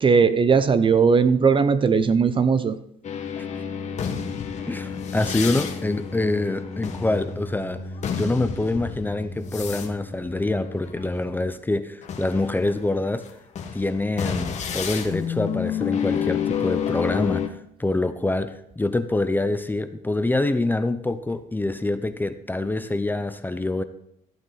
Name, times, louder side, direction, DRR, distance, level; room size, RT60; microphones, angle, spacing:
voice 1, 0.0-2.8, right 5 dB, 30° right, 12 dB, 0.7 m, -18 dB
sound 1, 3.0-11.5 12.0-17.5, left 7 dB, 45° left, 1.4 m, -30 dB
voice 2, 4.7-7.8 8.2-13.2 13.7-17.5 17.8-23.8, left 2 dB, 10° left, 11 dB, 0.6 m, -25 dB
14.0 x 8.8 x 4.1 m, 0.75 s
cardioid pair, 110°, 17 cm